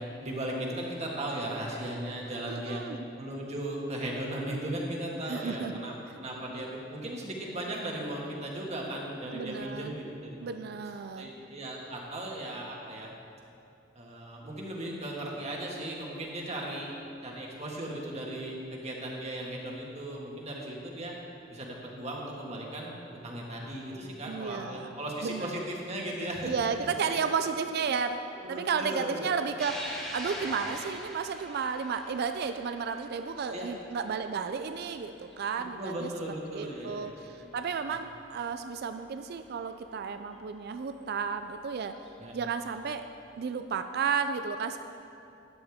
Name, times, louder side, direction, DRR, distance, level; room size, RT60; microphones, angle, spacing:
voice 1, 0.0-2.8 3.2-5.9 6.2-10.4 11.2-13.1 13.9-16.9 17.2-21.1 21.5-22.9 23.2-27.2 28.4-29.3 33.5-33.7 35.8-37.1 37.6-37.8 42.2-42.3, right 1 dB, 35° right, -2 dB, 1.7 m, -37 dB
voice 2, 2.5-3.0 5.3-5.7 9.3-9.9 10.4-11.3 24.2-24.9 25.2-25.6 26.4-36.1 36.5-42.0 42.3-43.0 43.4-44.8, right 6 dB, 55° right, 9 dB, 0.4 m, -33 dB
sound 1, 29.6-36.3 36.7-36.8 38.0-38.1 40.3-40.4 41.8-42.1, equal, 5° left, 2.1 m, -43 dB
12.5 x 10.5 x 3.6 m, 2.7 s
head